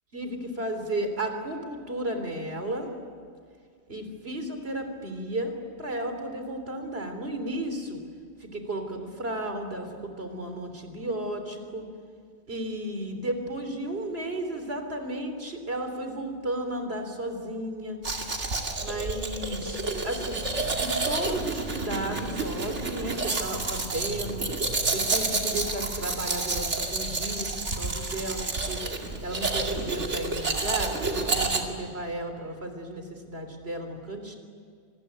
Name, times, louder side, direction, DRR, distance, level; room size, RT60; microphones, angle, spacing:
voice 1, 0.1-2.9 3.9-8.0 8.4-11.9 12.5-18.0 18.8-19.8 20.0-20.4 20.8-24.4 24.9-28.8 29.2-34.3, right 1 dB, 60° right, 6 dB, 3.9 m, -33 dB
Domestic sounds home sounds, 18.0-31.6, right 3 dB, 85° right, 2.7 m, -29 dB
27.0 x 20.5 x 9.4 m, 2.1 s
omnidirectional pair, 1.2 m